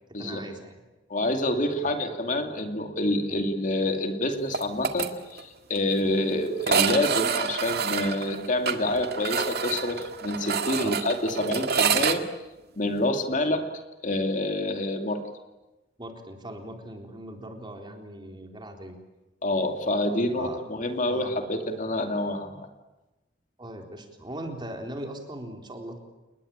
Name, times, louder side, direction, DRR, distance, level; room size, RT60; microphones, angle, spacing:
voice 1, 0.2-0.8 1.8-2.0 3.3-3.4 10.8-10.9 16.0-19.0 20.4-20.6 21.1-21.4 23.6-26.0, right 1 dB, 25° right, 3 dB, 3.8 m, -39 dB
voice 2, 1.1-12.2 12.8-13.6 14.0-15.2 19.4-22.6, left 1 dB, 45° left, 5 dB, 2.6 m, -27 dB
sound 1, 4.5-5.1 5.4-5.5 5.8-5.9 6.6-12.2, right 6 dB, 60° right, 1.8 m, -27 dB
29.0 x 20.5 x 8.9 m, 1.1 s
head